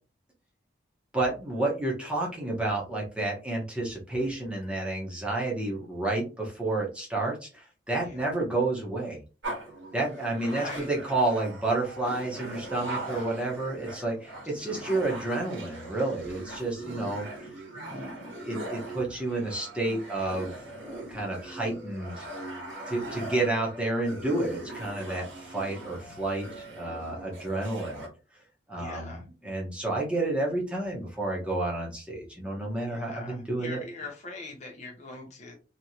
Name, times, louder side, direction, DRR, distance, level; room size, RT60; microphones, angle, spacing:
voice 1, 1.1-9.2 9.9-17.3 17.9-20.5 20.8-22.3 22.9-28.0 28.7-33.8, right 2 dB, 5° right, -3 dB, 1.0 m, -30 dB
sound 1, 9.4-28.1, right 2 dB, 85° right, 1.4 m, -40 dB
voice 2, 10.5-10.9 12.9-13.4 14.2-15.0 28.8-29.2 32.9-35.6, left 3 dB, 40° left, 1 dB, 0.7 m, -42 dB
3.1 x 3.0 x 2.7 m, 0.32 s
head